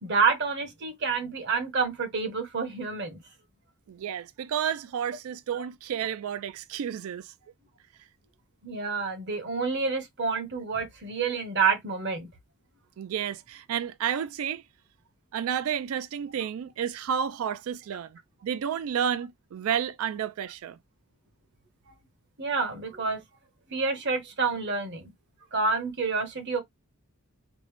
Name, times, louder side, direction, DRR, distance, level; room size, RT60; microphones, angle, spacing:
voice 1, 0.0-3.2 8.6-12.3 22.4-23.2 23.7-25.1 25.5-26.6, right 4 dB, 50° right, 1.1 m, -28 dB
voice 2, 3.9-7.3 13.0-14.6 15.3-20.8, right 8 dB, 70° right, 0.3 m, -31 dB
5.1 x 2.1 x 3.2 m
head